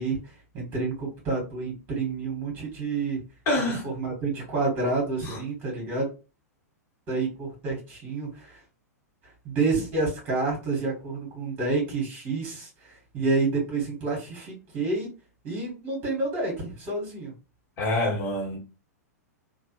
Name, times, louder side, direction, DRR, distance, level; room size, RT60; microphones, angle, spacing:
voice 1, 0.0-3.2 3.8-6.1 7.1-8.6 9.2-15.1 15.4-17.3, right 3 dB, 25° right, 1.6 m, -29 dB
voice 2, 3.5-3.9 5.3-5.4 17.8-18.6, left 1 dB, 30° left, 1.6 m, -26 dB
2.9 x 2.3 x 3.0 m
figure-of-eight pair, 100°, 9 cm